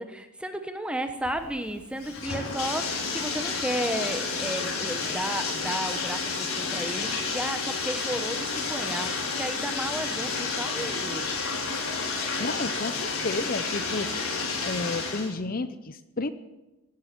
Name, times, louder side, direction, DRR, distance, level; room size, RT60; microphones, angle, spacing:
voice 1, 0.0-11.3 12.1-12.3, right 1 dB, 5° right, 7 dB, 1.0 m, -33 dB
Bathtub (filling or washing), 1.2-15.3, left 4 dB, 85° left, 4.5 m, -30 dB
voice 2, 12.4-14.1 14.6-16.3, left 3 dB, 40° left, 13 dB, 0.7 m, -31 dB
17.0 x 12.5 x 6.0 m, 1.0 s
head